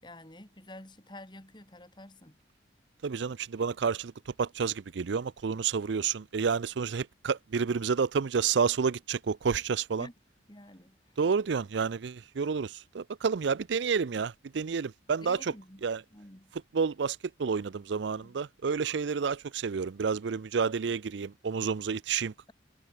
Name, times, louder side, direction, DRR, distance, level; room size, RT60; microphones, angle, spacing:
voice 1, 0.0-2.4 10.0-10.1 10.5-11.0 15.2-16.5 18.2-18.4, left 1 dB, 25° left, 3.4 m, -49 dB
voice 2, 3.0-4.1 4.4-10.1 11.2-15.5 15.8-16.0 16.7-22.5, right 5 dB, 75° right, 0.5 m, -30 dB
head